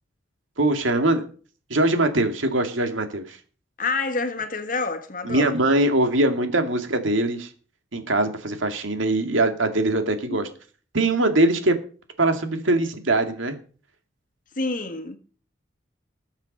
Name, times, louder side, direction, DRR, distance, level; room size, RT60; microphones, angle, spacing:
voice 1, 0.6-1.3 1.7-3.4 5.2-7.5 7.9-10.5 10.9-11.8 12.2-13.6, right 2 dB, 80° right, 2.2 m, -22 dB
voice 2, 3.8-5.5 10.3-10.5 14.5-15.2, left 3 dB, 40° left, 1.6 m, -28 dB
20.0 x 7.3 x 5.4 m
head